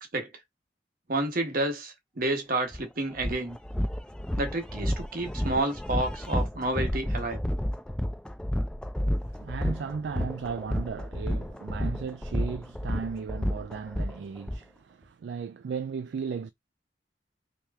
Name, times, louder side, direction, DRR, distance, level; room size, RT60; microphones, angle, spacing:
voice 1, 1.1-3.6 4.4-7.4, right 2 dB, 50° right, 1.1 m, -30 dB
sound 1, 2.7-2.8 3.2-14.6, equal, 5° left, 0.4 m, -30 dB
voice 2, 9.2-16.5, right 6 dB, 70° right, 0.3 m, -36 dB
3.2 x 2.9 x 3.5 m
head